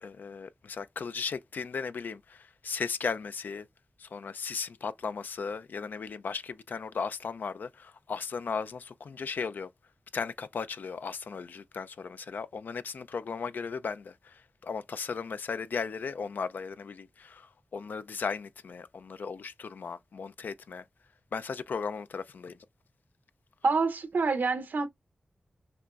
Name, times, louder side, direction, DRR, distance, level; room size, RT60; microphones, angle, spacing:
voice 1, 0.0-3.7 4.0-9.7 10.1-20.8 21.3-22.6, left 5 dB, 80° left, 0.4 m, -36 dB
voice 2, 23.6-24.9, right 4 dB, 80° right, 0.8 m, -27 dB
5.7 x 2.9 x 2.4 m
cardioid pair, 45°, 3 cm